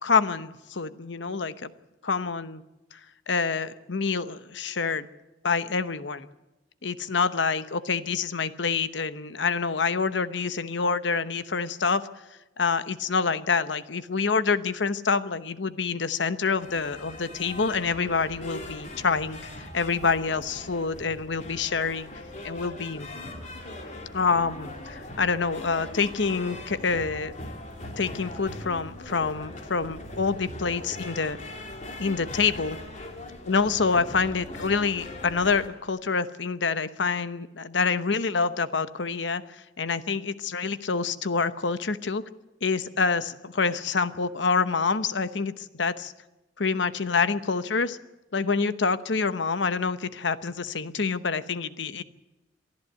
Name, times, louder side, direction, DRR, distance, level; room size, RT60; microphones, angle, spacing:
voice 1, 0.0-1.7 2.0-2.6 2.9-3.0 3.3-5.1 5.4-6.3 6.8-12.1 12.6-22.1 22.4-23.1 24.1-27.5 28.0-31.4 32.0-32.8 33.5-42.2 42.6-46.1 46.6-48.0 48.3-52.0, left 4 dB, 70° left, 13 dB, 0.9 m, -27 dB
sound 1, 16.6-35.7, left 1 dB, 40° left, 2.9 m, -40 dB
23.5 x 14.0 x 8.2 m, 1.0 s
head